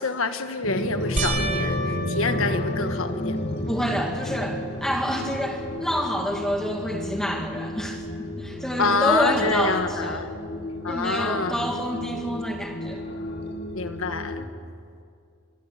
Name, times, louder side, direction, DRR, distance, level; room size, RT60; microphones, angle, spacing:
voice 1, 0.0-3.4 8.8-10.3 10.8-11.6 13.8-14.4, left 3 dB, 70° left, 8 dB, 1.6 m, -26 dB
sound 1, 0.6-14.5, left 1 dB, 50° left, 1.9 m, -32 dB
sound 2, 1.2-3.8 4.4-4.9 5.3-5.4 8.6-8.7, right 1 dB, 35° right, 3.4 m, -32 dB
voice 2, 3.7-10.2 10.9-13.0, equal, ahead, 1 dB, 2.5 m, -28 dB
26.0 x 22.5 x 7.1 m, 2.3 s
head